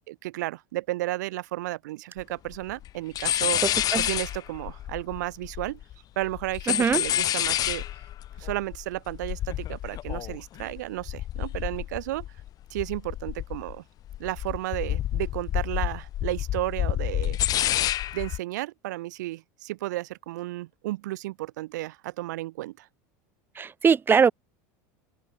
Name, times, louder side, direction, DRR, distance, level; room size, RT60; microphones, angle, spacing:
voice 1, 0.1-3.6 4.0-5.8 6.2-7.8 8.4-12.2 12.7-13.8 14.2-17.4 18.1-22.9, right 17 dB, 80° right, 4.5 m, -33 dB
sound 1, 2.2-2.3 2.5-2.9 3.1-5.9 6.2-12.5 12.8-13.8 14.1-18.4, left 13 dB, 40° left, 5.2 m, -29 dB
voice 2, 3.6-4.1 6.7-7.0 23.6-24.3, right 6 dB, 20° right, 2.6 m, -22 dB
open air
supercardioid pair, 120°, 9 cm